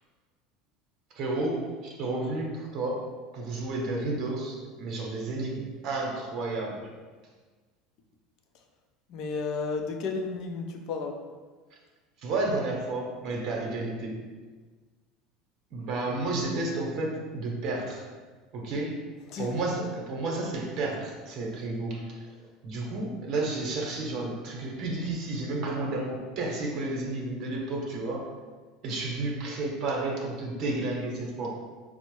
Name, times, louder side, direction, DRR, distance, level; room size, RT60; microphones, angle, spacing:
voice 1, 1.1-3.1 3.3-6.9 12.2-14.2 15.7-18.1 18.5-19.1 19.4-22.2 22.6-28.3 28.8-31.6, right 2 dB, 60° right, -1 dB, 0.8 m, -31 dB
voice 2, 9.1-11.2 19.3-19.6, left 4 dB, 55° left, 4 dB, 0.5 m, -32 dB
4.3 x 2.0 x 3.0 m, 1.4 s
supercardioid pair, 105°, 0 cm